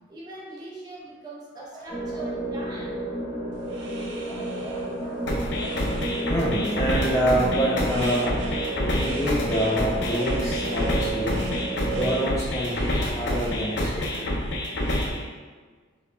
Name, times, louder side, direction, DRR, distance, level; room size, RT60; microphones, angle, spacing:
voice 1, 0.1-3.0, right 2 dB, 20° right, -5 dB, 0.7 m, -41 dB
voice 2, 1.7-2.3 4.3-5.3 5.6-5.8 6.3-11.4 11.9-14.3, right 1 dB, 15° left, -5 dB, 0.3 m, -28 dB
sound 1, 1.9-12.2, right 1 dB, 85° left, 1.4 m, -31 dB
sound 2, 3.5-15.0, right 2 dB, 70° right, 0.5 m, -42 dB
sound 3, 5.3-15.3, left 1 dB, 65° left, 0.5 m, -28 dB
4.7 x 2.4 x 2.2 m, 1.5 s
head